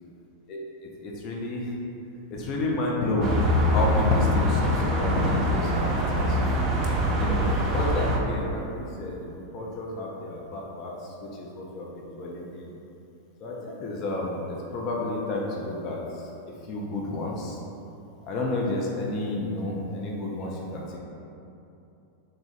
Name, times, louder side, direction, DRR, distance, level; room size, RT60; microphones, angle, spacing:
voice 1, 0.5-1.7 2.3-3.4 3.7-6.4 7.2-12.7 13.4-16.3 16.7-17.6 18.2-21.0, left 2 dB, 40° left, -3 dB, 0.5 m, -31 dB
sound 1, 3.2-8.2, equal, 35° right, 0.5 m, -24 dB
3.2 x 2.4 x 3.8 m, 2.7 s
figure-of-eight pair, 90°, 0 cm